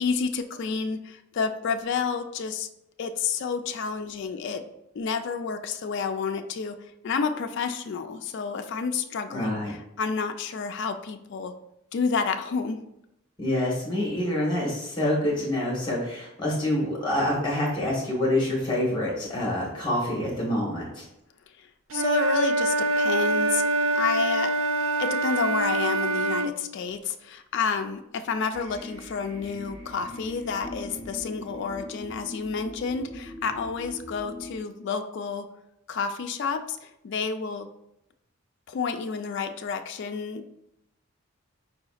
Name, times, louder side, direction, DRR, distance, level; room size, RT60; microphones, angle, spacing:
voice 1, 0.0-2.7 3.0-4.6 4.9-6.8 7.0-11.5 11.9-12.8 21.6-23.6 24.0-24.5 25.0-35.5 35.9-37.7 38.7-40.5, left 5 dB, 55° left, 6 dB, 0.3 m, -30 dB
voice 2, 9.3-9.7 13.4-21.1, left 1 dB, 20° left, -4 dB, 1.2 m, -26 dB
Wind instrument woodwind instrument, 21.9-26.5, right 2 dB, 70° right, 0.4 m, -25 dB
sound 1, 28.5-34.6, left 1 dB, 85° right, 1.3 m, -41 dB
4.8 x 3.9 x 2.4 m, 0.84 s
head